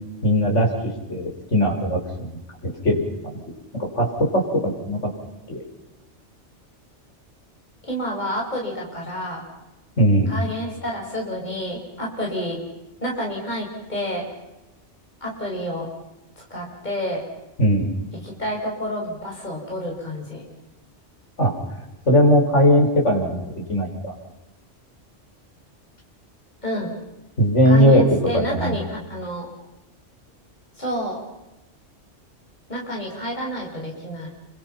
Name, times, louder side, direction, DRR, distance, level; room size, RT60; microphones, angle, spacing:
voice 1, 0.2-0.7 1.1-2.3 2.8-3.0 3.3-3.4 3.9-5.0 5.5-5.6 10.0-10.3 17.6-17.9 21.4-21.5 22.1-23.4 23.7-24.1 27.4-28.0 28.3-28.7, equal, 75° left, 0 dB, 6.3 m, -18 dB
voice 2, 7.8-9.4 10.3-12.6 13.0-14.2 15.2-15.9 16.4-17.2 18.2-20.4 26.6-26.9 27.6-29.5 30.8-31.2 32.7-34.3, equal, 35° left, -2 dB, 6.7 m, -29 dB
29.0 x 25.5 x 5.9 m, 1.0 s
omnidirectional pair, 1.2 m